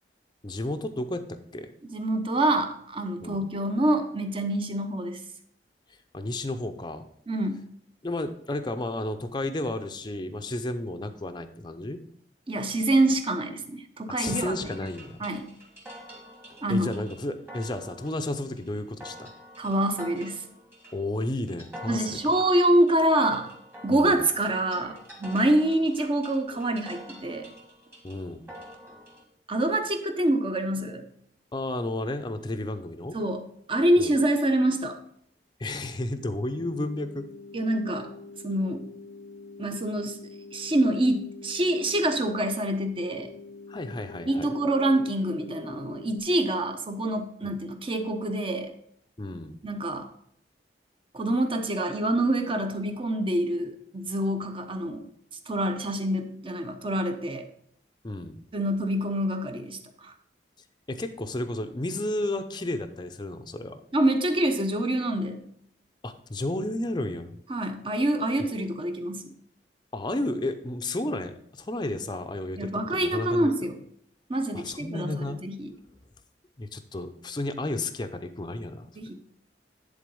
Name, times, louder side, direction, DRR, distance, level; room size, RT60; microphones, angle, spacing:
voice 1, 0.4-1.7 3.2-3.4 6.1-7.0 8.0-12.0 14.2-15.2 16.7-19.3 20.9-22.3 23.9-24.2 28.0-28.5 31.5-33.2 34.0-34.1 35.6-37.3 43.7-44.5 47.4-47.6 49.2-49.6 58.0-58.4 60.9-63.8 66.0-67.4 69.9-73.5 74.5-75.4 76.6-78.9, left 1 dB, 25° left, 7 dB, 0.6 m, -32 dB
voice 2, 1.9-5.2 7.3-7.6 12.5-14.6 15.2-15.5 16.6-16.9 19.6-20.4 21.9-23.5 23.8-27.5 29.5-31.0 33.1-35.0 37.5-38.1 38.4-38.8 39.6-40.2 40.5-43.3 44.3-48.7 49.6-50.1 51.1-55.0 55.5-57.4 58.5-60.1 63.9-65.4 67.5-69.3 72.6-73.8 74.3-75.7 79.0-79.1, right 1 dB, 30° right, 7 dB, 0.8 m, -26 dB
sound 1, 14.2-29.2, equal, 15° right, 1.4 m, -47 dB
sound 2, 36.2-46.2, left 3 dB, 80° left, 0.7 m, -45 dB
10.5 x 3.9 x 5.3 m, 0.68 s
head